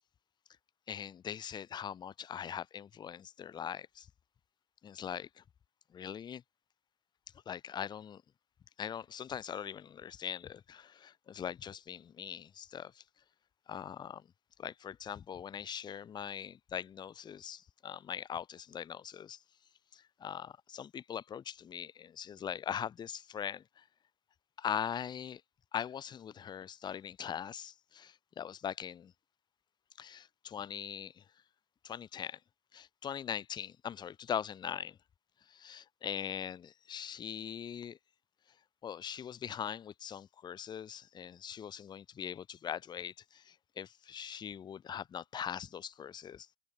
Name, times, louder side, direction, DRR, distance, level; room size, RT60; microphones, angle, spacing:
voice 1, 0.9-4.1 4.8-5.4 5.9-6.4 7.5-8.2 8.8-13.0 13.7-14.2 14.6-19.4 19.9-23.8 24.6-25.4 25.7-29.1 30.0-31.2 31.8-32.4 32.7-35.0 35.5-38.0 38.8-46.5, left 8 dB, 30° left, 0.9 m, -41 dB
open air
hypercardioid pair, 95°, 16 cm